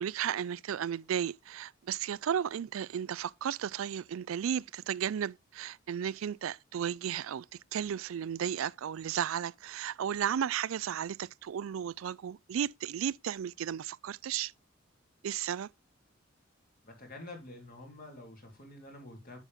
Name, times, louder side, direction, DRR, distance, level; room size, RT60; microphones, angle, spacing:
voice 1, 0.0-7.5 7.7-14.5 15.2-15.7, right 9 dB, 90° right, 0.4 m, -34 dB
voice 2, 16.8-19.4, left 2 dB, 45° left, 3.2 m, -48 dB
8.1 x 7.4 x 3.5 m
head